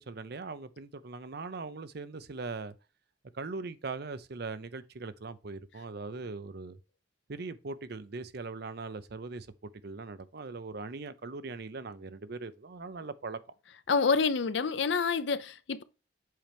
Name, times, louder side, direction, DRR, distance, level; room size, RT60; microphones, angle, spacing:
voice 1, 0.0-2.7 3.3-6.8 7.3-13.4, right 3 dB, 55° right, 0.6 m, -40 dB
voice 2, 13.9-15.8, left 5 dB, 65° left, 0.6 m, -27 dB
7.7 x 4.4 x 3.4 m
head